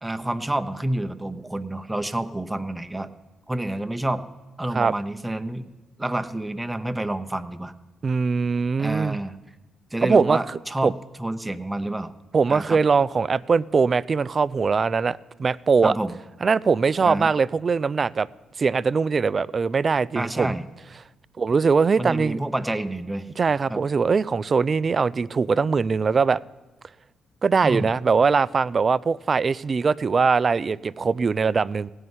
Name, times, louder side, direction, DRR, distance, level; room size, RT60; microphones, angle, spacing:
voice 1, 0.0-3.1 3.5-4.3 4.6-5.7 6.0-7.7 8.8-9.4 9.9-10.9 11.2-12.1 12.5-12.8 15.8-16.2 17.0-17.3 20.1-20.7 22.0-23.3 23.7-23.8 27.6-27.9, right 1 dB, 10° right, 8 dB, 0.8 m, -28 dB
voice 2, 8.0-9.2 10.0-10.9 12.3-15.9 16.4-18.3 18.6-20.5 21.4-22.4 23.4-26.4 27.4-31.9, right 5 dB, 45° right, 19 dB, 0.3 m, -21 dB
16.5 x 5.5 x 9.5 m, 1.1 s
supercardioid pair, 60°, 0 cm